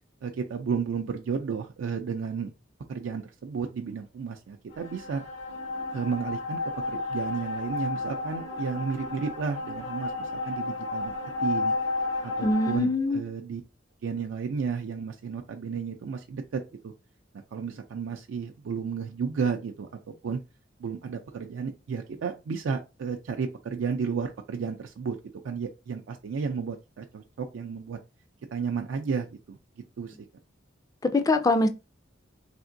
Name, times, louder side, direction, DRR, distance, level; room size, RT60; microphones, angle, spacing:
voice 1, 0.2-2.5 2.9-5.2 5.9-6.6 6.9-11.1 11.4-11.7 12.4-13.6 14.0-16.9 17.5-19.9 20.2-20.4 20.8-25.2 25.4-28.0 28.5-29.6 30.0-30.2, right 6 dB, 80° right, 0.4 m, -32 dB
sound 1, 4.7-12.8, left 3 dB, 85° left, 1.0 m, -32 dB
voice 2, 12.4-13.2 31.1-31.7, left 2 dB, 20° left, 0.3 m, -23 dB
3.4 x 2.8 x 2.6 m
head